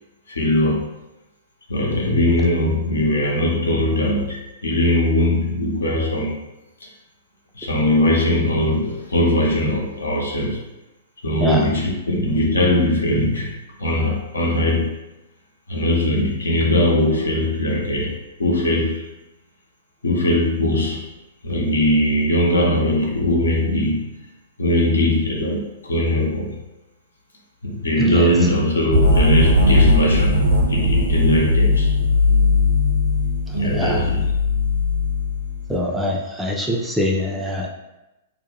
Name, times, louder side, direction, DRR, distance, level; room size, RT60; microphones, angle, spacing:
voice 1, 0.3-0.9 1.7-6.4 6.8-6.9 7.5-10.6 11.2-14.9 15.7-19.0 20.0-21.0 21.4-24.1 24.6-26.6 27.6-31.9 33.5-34.2, left 1 dB, 75° left, -2 dB, 0.6 m, -20 dB
voice 2, 28.0-28.4 33.5-34.1 35.7-37.7, equal, 5° right, -1 dB, 0.3 m, -23 dB
sound 1, 28.9-35.7, left 2 dB, 65° right, 0.6 m, -18 dB
2.5 x 2.1 x 2.8 m, 0.96 s
figure-of-eight pair, 110°, 0 cm